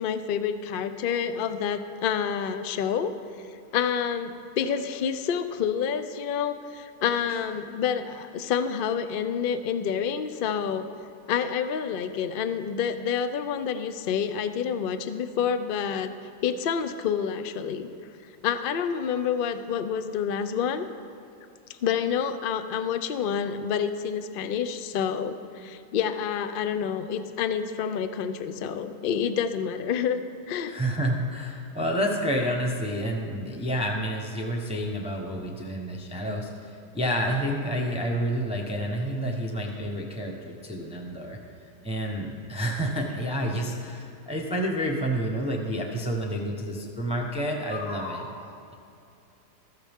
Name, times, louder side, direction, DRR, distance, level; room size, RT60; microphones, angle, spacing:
voice 1, 0.0-3.1 3.7-10.8 11.3-16.1 16.4-17.9 18.4-20.9 21.7-30.7, left 7 dB, 85° left, 10 dB, 0.4 m, -28 dB
voice 2, 30.6-41.4 41.8-48.7, equal, 5° right, 0 dB, 0.8 m, -29 dB
14.5 x 13.5 x 3.6 m, 2.7 s
omnidirectional pair, 1.7 m